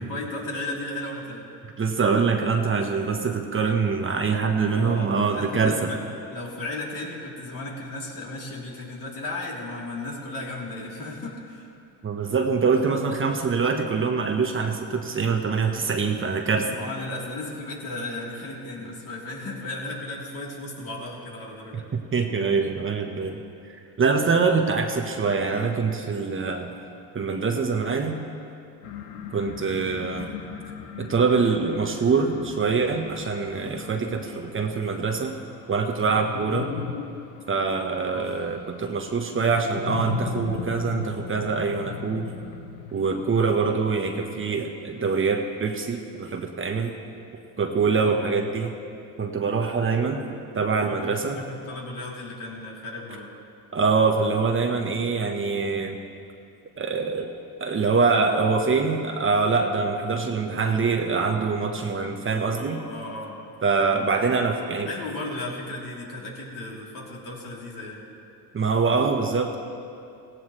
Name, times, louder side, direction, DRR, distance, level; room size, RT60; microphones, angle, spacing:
voice 1, 0.0-1.5 4.8-6.0 6.3-11.7 16.7-21.8 38.1-38.4 47.9-48.3 50.8-53.3 62.5-63.4 64.8-68.0, left 2 dB, 50° left, -3 dB, 3.5 m, -35 dB
voice 2, 1.8-5.9 12.0-16.8 21.7-21.8 22.1-23.4 24.0-26.7 27.1-28.2 29.3-30.3 31.0-35.3 35.7-36.7 37.5-42.3 42.9-46.9 47.6-48.7 49.2-50.2 50.5-51.4 53.7-56.0 56.8-57.3 57.6-62.8 63.6-64.9 68.5-69.6, right 4 dB, 30° right, 3 dB, 1.2 m, -24 dB
sound 1, 28.8-44.3, left 8 dB, 85° left, 1.0 m, -38 dB
16.5 x 16.5 x 3.3 m, 2.5 s
supercardioid pair, 85°, 42 cm